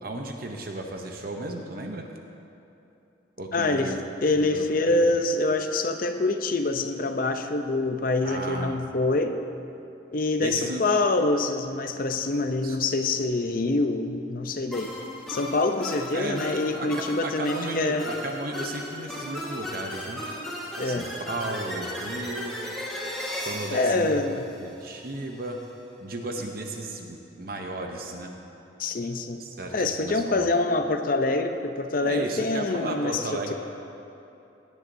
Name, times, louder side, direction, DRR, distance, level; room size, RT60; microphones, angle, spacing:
voice 1, 0.0-2.1 3.4-4.0 4.3-5.0 8.2-8.8 10.4-10.8 12.6-12.8 16.1-16.4 16.7-20.2 20.8-22.6 23.4-24.2 24.6-25.6 26.0-28.3 29.4-30.5 32.0-33.5, right 2 dB, 50° right, 2 dB, 0.8 m, -34 dB
voice 2, 3.5-3.9 4.2-9.4 10.1-14.9 15.3-18.1 20.8-21.1 23.7-24.4 28.8-29.4 29.7-33.5, left 2 dB, 45° left, 6 dB, 0.6 m, -25 dB
sound 1, 14.7-25.1, left 1 dB, ahead, 1.4 m, -36 dB
16.5 x 10.5 x 2.7 m, 2.8 s
head